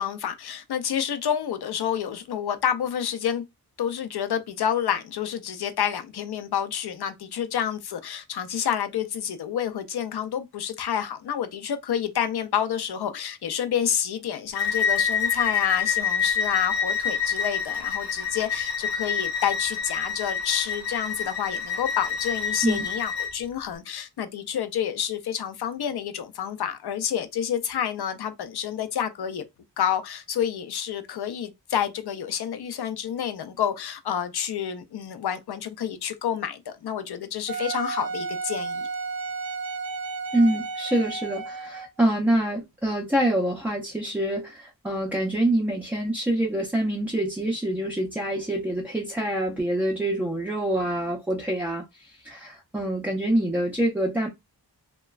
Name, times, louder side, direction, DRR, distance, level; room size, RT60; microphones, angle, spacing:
voice 1, 0.0-3.4 3.8-29.4 29.8-38.9, left 9 dB, 65° left, 0.5 m, -29 dB
Bowed string instrument, 14.5-23.3, left 6 dB, 85° left, 1.0 m, -27 dB
Wind instrument woodwind instrument, 37.5-42.0, right 4 dB, 55° right, 0.5 m, -32 dB
voice 2, 40.3-54.3, right 1 dB, 5° right, 0.4 m, -26 dB
3.0 x 2.2 x 2.3 m
wide cardioid pair, 120°, 42 cm